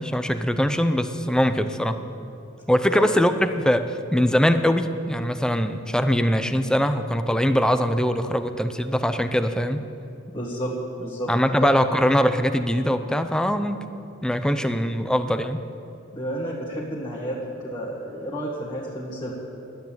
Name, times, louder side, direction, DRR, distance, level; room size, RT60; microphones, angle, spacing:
voice 1, 0.0-2.0 2.7-9.8 11.3-13.8 14.2-15.6, equal, 5° left, 9 dB, 0.6 m, -22 dB
voice 2, 10.3-10.7 11.0-11.3 11.6-11.7 14.6-14.7 16.1-19.3, equal, 20° left, -7 dB, 1.9 m, -31 dB
12.5 x 9.3 x 9.2 m, 2.6 s
head